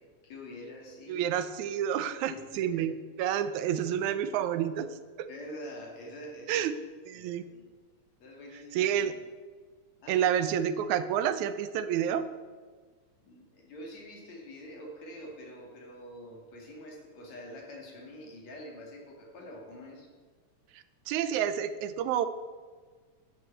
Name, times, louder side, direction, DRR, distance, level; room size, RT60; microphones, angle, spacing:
voice 1, 0.2-1.3 2.2-2.9 5.3-6.7 7.1-7.7 8.2-9.2 10.0-10.2 13.2-20.1, left 1 dB, 60° left, -1 dB, 3.4 m, -46 dB
voice 2, 1.1-5.3 6.5-6.7 7.1-7.4 8.7-9.1 10.1-12.3 20.7-22.3, right 9 dB, 75° right, 12 dB, 2.0 m, -29 dB
11.5 x 6.8 x 8.2 m, 1.5 s
omnidirectional pair, 3.5 m